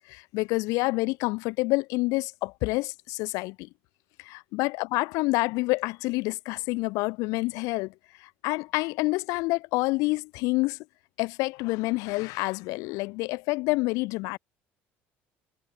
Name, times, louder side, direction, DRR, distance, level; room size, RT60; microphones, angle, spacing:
voice 1, 0.1-3.7 4.2-7.9 8.2-10.8 11.2-14.4, left 24 dB, 75° left, 4.1 m, -28 dB
supercardioid pair, 80°, 6 cm